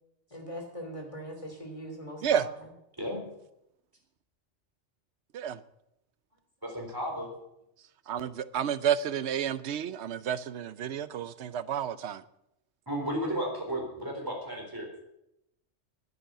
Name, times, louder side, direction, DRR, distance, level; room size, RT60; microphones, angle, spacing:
voice 1, 0.3-2.7, equal, 25° left, 2 dB, 3.0 m, -41 dB
voice 2, 6.6-7.3 12.9-14.9, equal, 15° right, 0 dB, 4.1 m, -33 dB
voice 3, 8.1-12.2, right 9 dB, 70° right, 15 dB, 0.9 m, -30 dB
10.5 x 9.6 x 8.1 m, 0.83 s
omnidirectional pair, 1.2 m